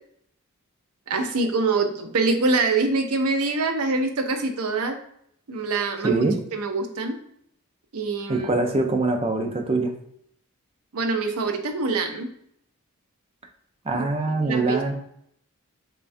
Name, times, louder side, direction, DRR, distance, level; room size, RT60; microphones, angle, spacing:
voice 1, 1.1-5.0 5.5-6.2 6.5-7.2 7.9-8.5 10.9-12.3 13.9-14.0 14.4-14.8, right 3 dB, 90° right, 6 dB, 0.6 m, -24 dB
voice 2, 6.0-6.3 8.3-9.9 13.8-14.9, right 2 dB, 25° right, 3 dB, 0.5 m, -23 dB
6.7 x 2.3 x 2.6 m, 0.71 s
head